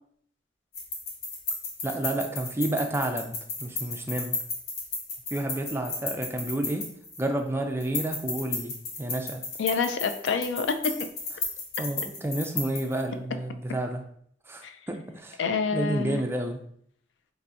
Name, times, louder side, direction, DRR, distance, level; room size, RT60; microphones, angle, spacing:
sound 1, 0.7-7.4 7.8-13.0, left 3 dB, 60° left, 0.8 m, -34 dB
voice 1, 1.8-3.3 3.6-4.4 5.3-6.9 7.2-9.4 11.8-14.0 14.5-15.4 15.7-16.6, right 1 dB, 15° right, 3 dB, 0.4 m, -30 dB
voice 2, 9.6-10.9 14.6-14.7 15.4-16.2, left 5 dB, 75° left, 8 dB, 0.4 m, -27 dB
4.4 x 2.7 x 2.5 m, 0.65 s
head